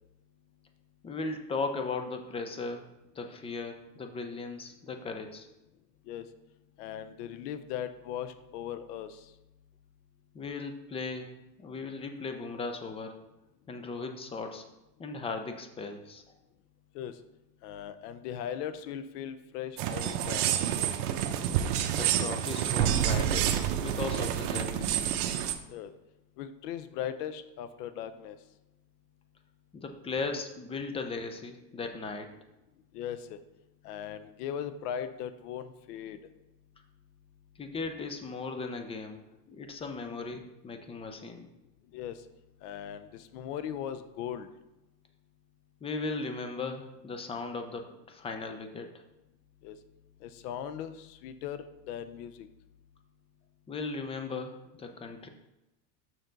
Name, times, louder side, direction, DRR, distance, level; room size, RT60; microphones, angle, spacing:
voice 1, 1.0-2.8 3.1-5.5 10.3-11.3 11.6-13.2 13.7-14.7 15.0-16.2 22.0-24.9 29.7-32.3 37.6-39.2 39.5-41.5 45.8-48.9 53.7-55.3, left 4 dB, 15° left, 6 dB, 0.4 m, -37 dB
voice 2, 6.8-9.3 16.9-17.2 17.6-20.5 25.7-25.9 26.4-28.4 32.9-33.4 33.8-36.2 41.9-42.2 42.6-44.5 49.6-49.8 50.2-52.5, left 9 dB, 70° left, 12 dB, 0.8 m, -38 dB
sound 1, 19.8-25.5, right 10 dB, 65° right, 0.9 m, -28 dB
6.6 x 6.0 x 3.9 m, 0.95 s
supercardioid pair, 130°, 49 cm